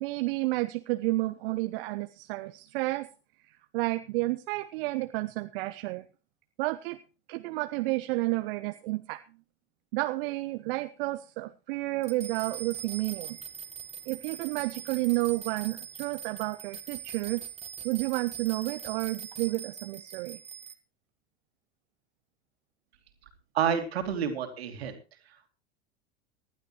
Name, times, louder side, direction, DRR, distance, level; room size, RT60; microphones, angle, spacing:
voice 1, 0.0-3.1 3.7-6.0 6.6-7.0 7.3-9.2 9.9-13.4 14.1-17.4 17.8-20.4, right 20 dB, 60° right, 10 dB, 0.8 m, -31 dB
sound 1, 12.0-20.7, right 8 dB, 20° right, 1.6 m, -42 dB
voice 2, 23.5-25.0, right 8 dB, 75° right, 6 dB, 2.9 m, -29 dB
19.5 x 12.0 x 3.1 m, 0.32 s
hypercardioid pair, 85°, 31 cm